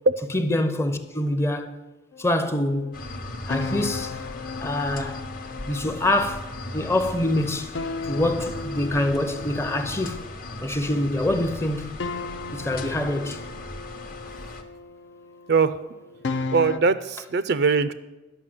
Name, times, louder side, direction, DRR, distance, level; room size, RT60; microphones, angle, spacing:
voice 1, 0.3-1.8 2.2-2.9 3.5-4.2 4.6-5.2 5.7-6.5 6.7-7.7 8.1-10.2 10.6-12.0 12.5-13.4, left 1 dB, 15° left, 0.6 m, -25 dB
sound 1, 2.1-11.4 12.0-16.8, left 3 dB, 70° left, 0.5 m, -36 dB
sound 2, 2.9-14.6, left 2 dB, 45° left, 0.8 m, -37 dB
voice 2, 16.5-17.9, right 4 dB, 55° right, 0.4 m, -21 dB
11.0 x 5.8 x 7.6 m
head